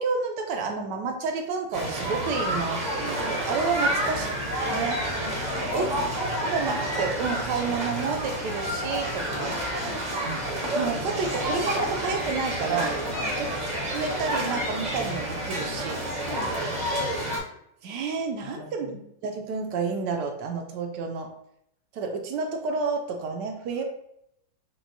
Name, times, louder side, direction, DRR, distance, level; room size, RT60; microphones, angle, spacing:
voice 1, 0.0-4.3 4.7-5.0 5.7-5.9 6.2-9.5 10.7-13.0 13.4-13.5 13.9-16.0 17.8-21.3 21.9-23.8, right 4 dB, 75° right, 3 dB, 1.1 m, -30 dB
sound 1, 1.7-17.4, right 1 dB, 35° right, 0.7 m, -29 dB
voice 2, 3.8-4.4 5.4-6.1 9.3-10.3 13.1-13.4 16.2-16.6 18.4-19.0 23.8-23.9, left 2 dB, 65° left, -2 dB, 0.8 m, -40 dB
6.0 x 2.1 x 2.6 m, 0.75 s
omnidirectional pair, 2.0 m